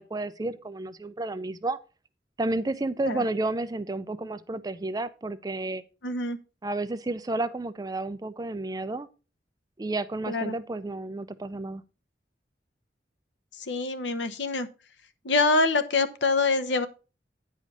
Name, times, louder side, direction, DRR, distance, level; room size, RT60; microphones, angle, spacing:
voice 1, 0.0-1.8 2.4-5.8 6.6-9.1 9.8-11.8, right 2 dB, 20° right, 0.4 m, -31 dB
voice 2, 6.0-6.4 10.3-10.6 13.6-14.7 15.2-16.9, left 3 dB, 75° left, 0.9 m, -25 dB
9.4 x 5.0 x 5.1 m
head